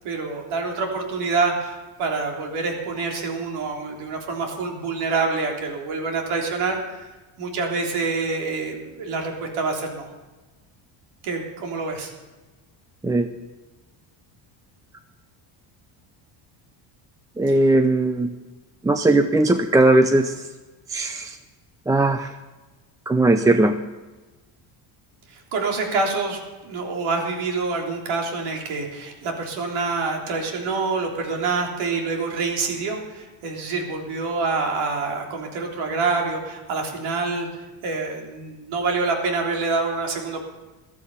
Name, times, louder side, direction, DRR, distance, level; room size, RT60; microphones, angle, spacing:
voice 1, 0.0-6.8 7.4-10.1 11.2-12.1 17.5-17.6 25.3-37.5 37.8-40.4, right 4 dB, 75° right, 1 dB, 3.6 m, -26 dB
voice 2, 17.4-18.3 18.8-20.3 20.9-21.4 21.9-22.3 23.1-23.7, right 2 dB, 10° right, 8 dB, 0.3 m, -18 dB
14.5 x 13.5 x 5.6 m, 1.2 s
cardioid pair, 135°, 50 cm